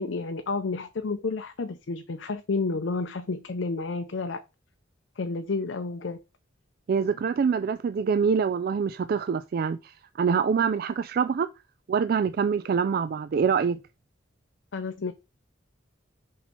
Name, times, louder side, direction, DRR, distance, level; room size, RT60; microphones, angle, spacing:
voice 1, 0.0-4.4 5.2-6.2 14.7-15.1, left 3 dB, 75° left, 0.5 m, -30 dB
voice 2, 6.9-11.5 11.9-13.8, right 6 dB, 50° right, 0.3 m, -25 dB
5.5 x 4.3 x 4.3 m
head